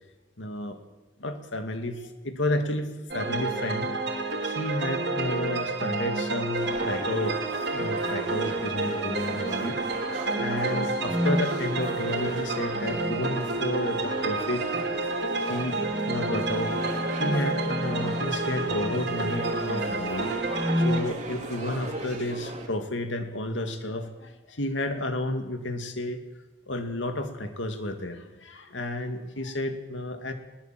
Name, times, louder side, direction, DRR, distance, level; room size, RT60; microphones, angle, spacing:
voice 1, 0.4-0.8 1.2-3.9 4.4-7.4 7.7-9.8 10.3-14.6 15.5-16.8 17.1-20.3 20.8-26.2 26.7-30.3, left 1 dB, 80° left, 6 dB, 2.4 m, -31 dB
sound 1, 3.1-21.0, right 3 dB, 60° right, 3.2 m, -29 dB
sound 2, 6.6-22.7, right 2 dB, 35° right, 3.2 m, -39 dB
sound 3, 11.1-11.5 12.8-13.4 15.6-19.7 20.4-21.1, left 1 dB, ahead, 1.2 m, -31 dB
21.0 x 18.5 x 7.7 m, 1.1 s
head